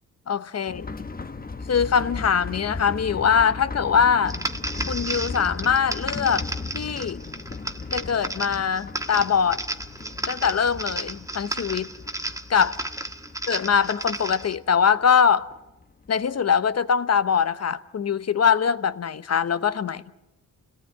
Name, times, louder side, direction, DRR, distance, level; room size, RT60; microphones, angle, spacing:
voice 1, 0.3-0.9 1.7-4.4 4.9-6.4 6.7-7.2 7.9-9.6 10.3-11.9 12.5-12.8 13.5-15.5 16.1-20.0, left 7 dB, 45° left, 1.0 m, -22 dB
sound 1, 0.7-16.1 16.4-16.5 16.9-17.0, left 4 dB, 25° left, 1.0 m, -37 dB
sound 2, 4.3-14.5, right 1 dB, 10° right, 1.5 m, -33 dB
28.5 x 18.0 x 9.6 m
cardioid pair, 95°, 34 cm